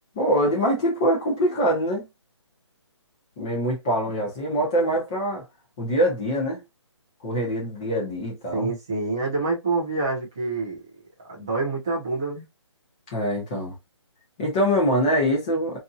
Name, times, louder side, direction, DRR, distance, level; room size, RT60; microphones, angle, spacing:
voice 1, 0.2-2.1 3.4-5.4 5.8-6.6 7.2-8.7 13.1-13.7 14.4-15.8, equal, 15° left, 0.9 m, -24 dB
voice 2, 8.5-10.8 11.2-12.5, right 3 dB, 10° right, 0.4 m, -27 dB
2.8 x 2.5 x 2.4 m
hypercardioid pair, 175°, 16 cm